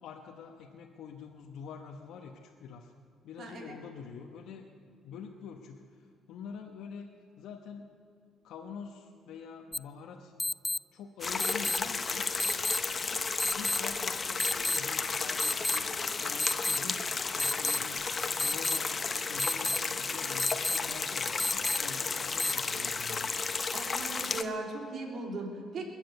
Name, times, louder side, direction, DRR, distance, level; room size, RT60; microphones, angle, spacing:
voice 1, 0.0-2.9 3.2-4.6 5.0-7.9 8.4-10.4 10.9-12.3 13.5-15.9 16.2-17.0 17.3-18.0 18.4-18.9 19.3-23.3, left 6 dB, 75° left, 1 dB, 1.0 m, -46 dB
voice 2, 3.4-3.7 23.7-25.9, right 2 dB, 60° right, 0 dB, 3.4 m, -38 dB
sound 1, 9.7-9.8 10.4-10.8 11.4-11.8 12.4-12.8 13.4-13.8 14.4-14.8 15.4-15.8 16.4-16.8 17.4-17.8 18.4-18.8 19.4-19.8 20.4-20.8 21.4-21.8 22.4-22.5, left 2 dB, 15° left, 0.3 m, -29 dB
sound 2, 11.2-24.4, left 4 dB, 35° left, 1.0 m, -33 dB
21.0 x 7.6 x 8.3 m, 2.2 s
supercardioid pair, 65°, 0 cm